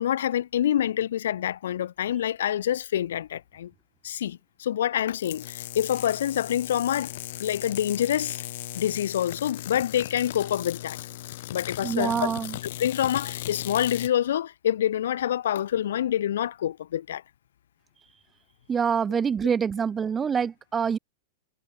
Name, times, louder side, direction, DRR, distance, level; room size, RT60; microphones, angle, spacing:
voice 1, 0.0-3.7 4.0-7.1 7.4-8.4 8.8-11.0 11.5-12.3 12.8-17.2, left 10 dB, 80° left, 0.5 m, -26 dB
sound 1, 5.1-14.1, left 15 dB, 55° left, 4.0 m, -37 dB
voice 2, 11.8-12.6 18.7-21.0, right 7 dB, 15° right, 0.7 m, -26 dB
supercardioid pair, 165°, 0 cm